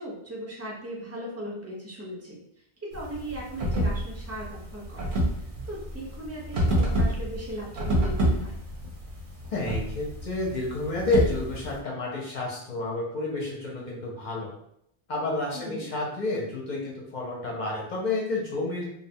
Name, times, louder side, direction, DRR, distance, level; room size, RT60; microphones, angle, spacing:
voice 1, 0.0-2.4 2.8-5.2 5.7-8.6 15.5-15.9, right 1 dB, 20° right, -4 dB, 0.5 m, -38 dB
sound 1, 2.9-11.8, equal, 55° right, 0.7 m, -28 dB
voice 2, 9.5-14.5 15.1-18.9, left 2 dB, 55° left, -3 dB, 0.6 m, -30 dB
2.6 x 2.0 x 2.6 m, 0.74 s
omnidirectional pair, 1.1 m